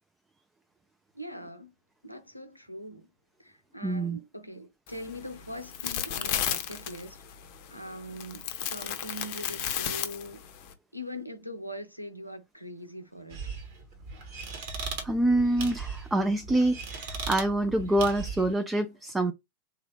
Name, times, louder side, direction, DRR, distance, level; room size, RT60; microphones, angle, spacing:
voice 1, 1.1-1.7 2.0-3.1 3.4-7.2 7.7-10.4 10.9-13.4, equal, 90° left, 0.6 m, -42 dB
voice 2, 3.8-4.2 15.0-19.3, right 1 dB, 10° right, 0.4 m, -26 dB
sound 1, 4.9-10.7, left 10 dB, 45° left, 0.6 m, -34 dB
sound 2, 13.3-18.6, right 4 dB, 50° right, 1.3 m, -38 dB
3.6 x 2.8 x 3.2 m
figure-of-eight pair, 90°, 0 cm